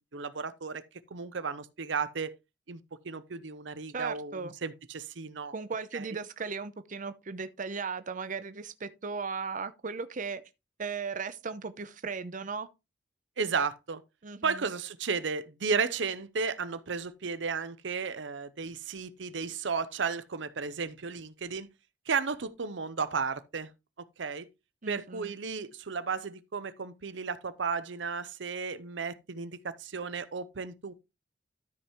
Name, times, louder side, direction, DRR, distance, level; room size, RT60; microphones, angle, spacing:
voice 1, 0.1-0.8 1.1-2.3 2.7-5.5 5.9-6.1 13.4-14.0 14.4-21.7 22.1-23.7 24.2-24.5 24.9-30.9, right 5 dB, 80° right, 0.7 m, -34 dB
voice 2, 3.9-4.5 5.5-10.4 10.8-12.7 14.2-14.7 24.8-25.3, right 5 dB, 45° right, 0.7 m, -37 dB
13.0 x 5.6 x 3.1 m
head